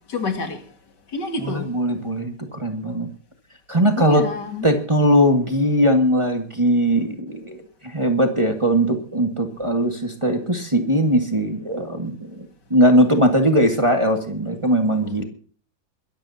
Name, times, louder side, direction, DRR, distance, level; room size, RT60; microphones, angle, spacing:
voice 1, 0.1-0.6 1.1-1.7 4.0-4.8, left 3 dB, 85° left, 2.8 m, -28 dB
voice 2, 1.4-3.1 3.7-4.2 4.6-12.5 12.7-15.2, equal, 20° right, 1.8 m, -20 dB
22.5 x 14.0 x 2.8 m
omnidirectional pair, 1.8 m